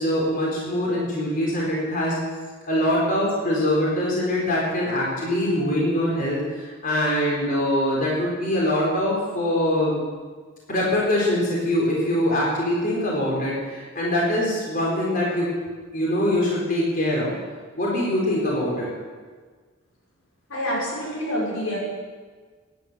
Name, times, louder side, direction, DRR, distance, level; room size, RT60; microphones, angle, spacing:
voice 1, 0.0-2.2 2.7-10.0 10.7-15.5 15.9-17.3 17.8-18.9, left 1 dB, 40° left, -4 dB, 4.2 m, -23 dB
voice 2, 20.5-21.8, equal, 90° left, -4 dB, 5.8 m, -27 dB
17.0 x 10.5 x 6.8 m, 1.5 s
head